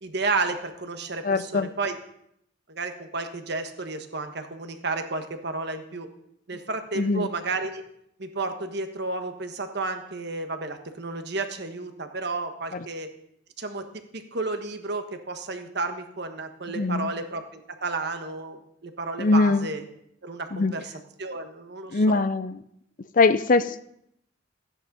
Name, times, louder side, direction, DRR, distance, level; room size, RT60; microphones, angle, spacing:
voice 1, 0.0-1.9 2.7-6.1 6.5-7.8 8.2-13.1 13.6-19.8 20.2-20.9 21.2-22.2, right 3 dB, 55° right, 7 dB, 1.4 m, -32 dB
voice 2, 1.2-1.7 7.0-7.3 12.7-12.9 16.7-17.1 19.2-19.7 20.5-20.7 21.9-22.6 23.1-23.8, left 3 dB, 45° left, 14 dB, 0.5 m, -22 dB
14.5 x 9.8 x 5.4 m, 0.74 s
head